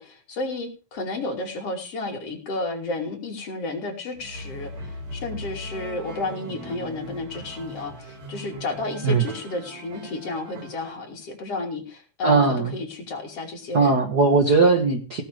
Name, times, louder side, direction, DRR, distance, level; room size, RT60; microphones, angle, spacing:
voice 1, 0.0-14.0, left 2 dB, 50° left, 2 dB, 3.8 m, -32 dB
sound 1, 4.1-10.9, equal, 60° right, 4.2 m, -39 dB
voice 2, 12.2-12.7 13.7-15.2, right 4 dB, 45° right, 4 dB, 1.5 m, -19 dB
17.5 x 6.5 x 6.5 m, 0.33 s
omnidirectional pair, 3.6 m